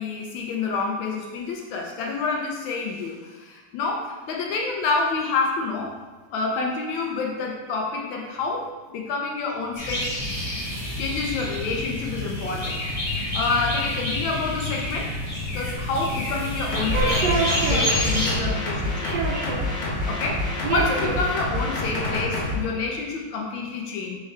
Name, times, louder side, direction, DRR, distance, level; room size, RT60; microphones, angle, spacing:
voice 1, 0.0-5.9 6.3-10.1 11.0-15.1 15.5-17.2 17.7-19.1 20.1-20.4 20.7-24.2, left 4 dB, 80° left, -1 dB, 1.3 m, -28 dB
sound 1, 9.8-18.3, left 1 dB, 20° left, 1.1 m, -28 dB
sound 2, 16.7-22.5, left 2 dB, 50° left, 0.5 m, -27 dB
voice 2, 16.9-17.9 19.0-19.7 20.6-21.2, right 4 dB, 75° right, 0 dB, 1.1 m, -26 dB
4.3 x 3.6 x 3.2 m, 1.3 s
omnidirectional pair, 2.1 m